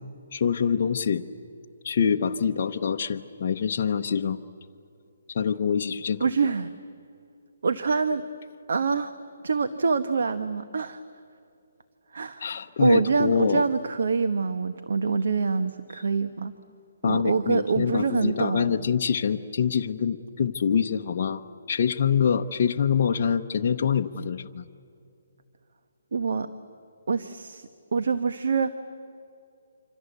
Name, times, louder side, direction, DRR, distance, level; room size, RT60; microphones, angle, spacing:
voice 1, 0.3-1.2 1.8-4.4 5.3-6.2 12.4-13.6 17.0-21.4 21.7-24.7, left 7 dB, 45° left, 2 dB, 0.9 m, -25 dB
voice 2, 6.2-6.7 7.6-8.2 8.7-9.1 9.4-11.0 12.1-16.5 17.0-18.9 26.1-26.5 27.1-28.7, right 4 dB, 70° right, 10 dB, 1.2 m, -25 dB
27.0 x 26.0 x 8.2 m, 2.6 s
hypercardioid pair, 165°, 0 cm